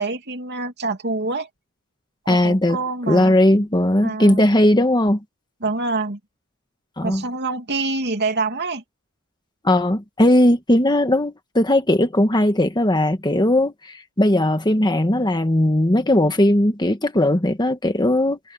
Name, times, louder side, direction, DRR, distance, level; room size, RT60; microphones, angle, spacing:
voice 1, 0.0-1.5 2.2-3.7 4.0-4.4 5.6-6.2 7.0-8.8, right 3 dB, 50° right, 2.8 m, -26 dB
voice 2, 2.3-2.8 3.1-5.2 7.0-7.2 9.6-18.4, left 1 dB, 20° left, 1.6 m, -18 dB
head